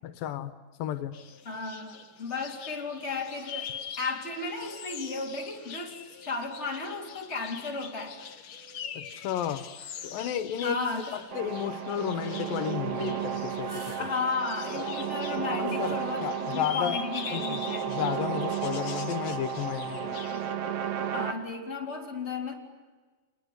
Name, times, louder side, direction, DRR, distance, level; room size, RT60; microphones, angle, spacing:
voice 1, 0.0-0.5 0.8-1.2 9.0-9.7 10.0-10.8 11.1-14.0 15.5-17.0 17.3-17.6 17.9-20.2, left 10 dB, 90° left, 11 dB, 2.9 m, -32 dB
sound 1, 1.1-20.5, left 7 dB, 50° left, 1.6 m, -44 dB
voice 2, 1.4-8.2 10.6-11.1 14.0-18.0 21.1-22.5, left 4 dB, 20° left, -1 dB, 4.1 m, -34 dB
sound 2, 10.4-11.5 12.1-12.2 12.6-12.7 13.4-14.5 15.2-16.4 16.8-16.9 18.0-18.2, right 1 dB, 60° right, 7.1 m, -51 dB
sound 3, 11.3-21.3, right 8 dB, 90° right, 3.5 m, -33 dB
29.5 x 20.5 x 9.7 m, 1.3 s
omnidirectional pair, 3.9 m